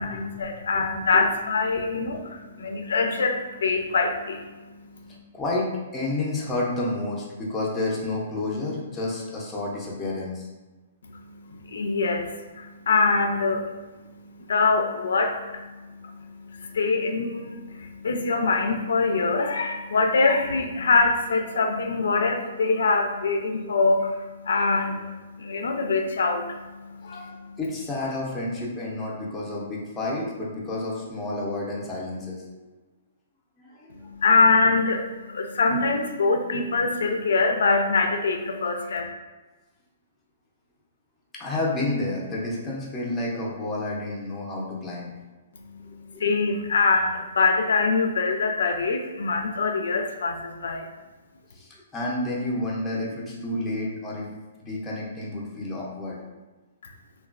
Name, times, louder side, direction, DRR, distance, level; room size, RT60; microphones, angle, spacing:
voice 1, 0.0-5.2 11.0-27.6 33.9-39.1 45.5-50.9, left 4 dB, 90° left, 4 dB, 0.3 m, -24 dB
voice 2, 5.3-10.5 27.1-27.2 27.6-32.7 33.6-34.0 41.3-45.1 45.8-46.2 51.5-54.3 54.6-56.2, left 2 dB, 10° left, -5 dB, 0.5 m, -30 dB
3.1 x 2.2 x 2.4 m, 1.2 s
hypercardioid pair, 165°, 0 cm